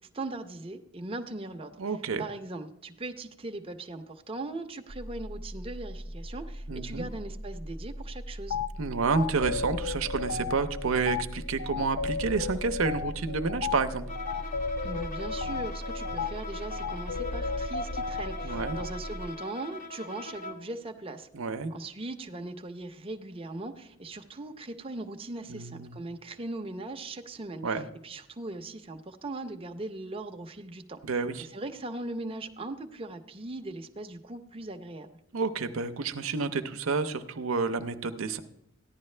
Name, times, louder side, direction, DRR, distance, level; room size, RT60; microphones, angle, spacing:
voice 1, 0.1-1.9 2.2-8.6 14.8-21.3 21.7-31.0 31.4-35.1, right 2 dB, 30° right, 5 dB, 0.7 m, -39 dB
voice 2, 1.8-2.2 6.7-7.1 8.8-14.1 18.4-18.8 21.3-21.7 25.5-26.0 27.6-27.9 31.0-31.5 35.3-38.4, right 4 dB, 90° right, 8 dB, 0.7 m, -29 dB
sound 1, 4.9-19.3, equal, ahead, 0.3 m, -40 dB
sound 2, 8.5-8.7 9.1-18.9, left 4 dB, 65° left, 0.6 m, -34 dB
Bowed string instrument, 14.1-20.7, left 2 dB, 40° left, 1.0 m, -41 dB
14.5 x 10.5 x 3.3 m, 0.81 s
head